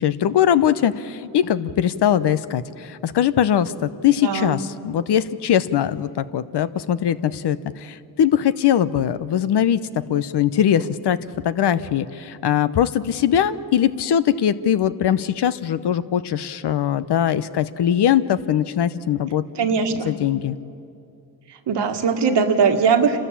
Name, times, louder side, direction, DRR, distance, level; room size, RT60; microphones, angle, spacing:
voice 1, 0.0-9.8 10.1-11.2 11.4-20.6, left 10 dB, 60° left, 14 dB, 0.9 m, -21 dB
voice 2, 4.2-4.6 19.6-20.1 21.7-23.2, right 5 dB, 65° right, 6 dB, 1.8 m, -20 dB
28.5 x 13.0 x 8.5 m, 2.5 s
supercardioid pair, 65°, 45 cm